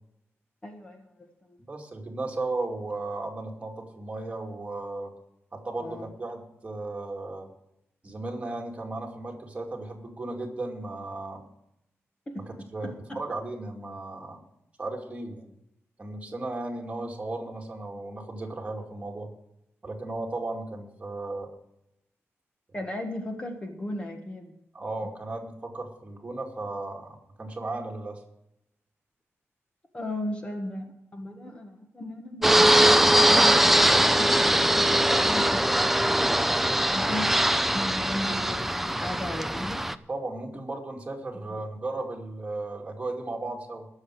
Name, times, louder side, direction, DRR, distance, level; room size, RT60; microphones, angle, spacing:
voice 1, 0.6-1.6 5.8-6.1 12.3-13.2 22.7-24.5 29.9-36.2 36.9-39.8 41.5-41.6, left 1 dB, 25° left, 3 dB, 1.5 m, -37 dB
voice 2, 1.7-5.1 5.5-7.5 8.0-11.4 12.7-12.9 13.1-14.4 14.8-15.5 16.0-19.3 19.8-21.5 24.7-28.2 37.0-37.2 40.1-43.9, right 2 dB, 25° right, 0 dB, 2.5 m, -35 dB
Fixed-wing aircraft airplane, 32.4-40.0, right 1 dB, 5° right, 0.5 m, -21 dB
20.5 x 7.2 x 4.8 m, 0.82 s
wide cardioid pair, 155°, 5 cm